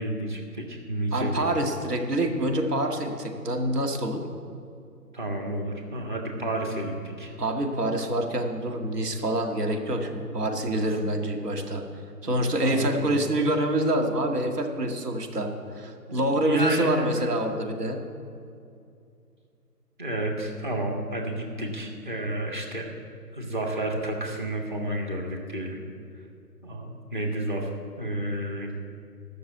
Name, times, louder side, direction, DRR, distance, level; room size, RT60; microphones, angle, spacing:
voice 1, 0.0-1.6 5.1-7.3 10.7-11.2 12.2-12.9 16.1-17.3 20.0-22.9 23.3-25.8 26.6-27.7 28.0-28.7, right 1 dB, 30° right, 1 dB, 1.7 m, -31 dB
voice 2, 1.1-4.2 7.4-11.8 12.2-18.0, right 1 dB, 70° right, 2 dB, 2.2 m, -26 dB
13.5 x 6.7 x 8.2 m, 2.5 s
figure-of-eight pair, 170°, 49 cm